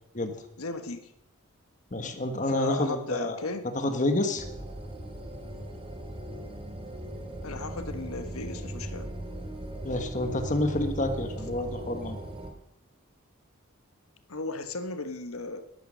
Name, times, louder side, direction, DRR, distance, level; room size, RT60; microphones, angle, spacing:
voice 1, 0.6-1.1 2.5-3.7 7.4-9.1 14.3-15.6, left 2 dB, 85° left, 9 dB, 1.4 m, -35 dB
voice 2, 1.9-3.4 3.7-4.4 9.8-12.2, left 1 dB, 35° left, 7 dB, 1.3 m, -28 dB
sound 1, 4.4-12.5, right 1 dB, 25° right, 2.3 m, -38 dB
12.5 x 12.0 x 6.3 m, 0.77 s
head